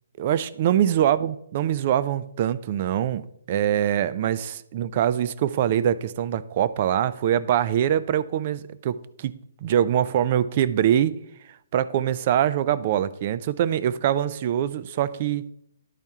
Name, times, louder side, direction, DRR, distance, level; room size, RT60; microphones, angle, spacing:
voice 1, 0.2-3.2 3.5-11.1 11.7-15.5, right 10 dB, 40° right, 0.4 m, -23 dB
11.0 x 4.4 x 3.6 m
hypercardioid pair, 150°, 0 cm